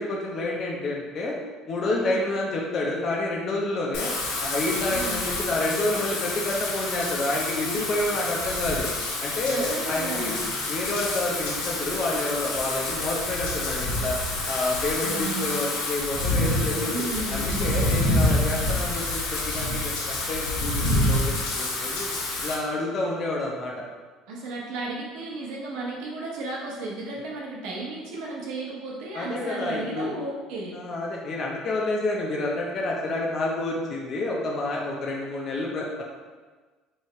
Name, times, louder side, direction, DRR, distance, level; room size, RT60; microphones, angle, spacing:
voice 1, 0.0-1.4 1.7-4.1 4.4-8.9 9.2-10.3 10.7-14.2 14.4-22.1 22.4-23.7 29.1-30.1 30.7-36.0, left 2 dB, 35° left, -2 dB, 0.5 m, -29 dB
voice 2, 1.8-2.2 4.9-5.2 9.5-10.5 15.0-15.5 16.8-17.8 22.3-22.5 24.3-30.8, right 2 dB, 75° right, -3 dB, 0.7 m, -34 dB
Wind / Rain, 3.9-22.6, left 2 dB, 80° left, 0.8 m, -28 dB
3.1 x 2.8 x 4.2 m, 1.4 s
cardioid pair, 150°, 0 cm